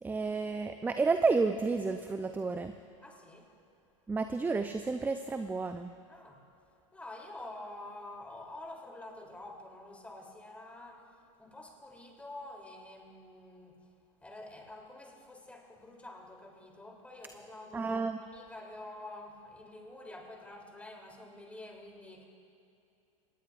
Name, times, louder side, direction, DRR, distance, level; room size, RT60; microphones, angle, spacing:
voice 1, 0.0-2.8 4.1-5.9 17.7-18.2, right 4 dB, 10° right, 8 dB, 0.5 m, -31 dB
voice 2, 3.0-3.5 6.1-6.5 6.9-13.8 14.2-22.3, left 2 dB, 10° left, 0 dB, 3.1 m, -48 dB
24.5 x 19.5 x 2.5 m, 2.6 s
hypercardioid pair, 95°, 17 cm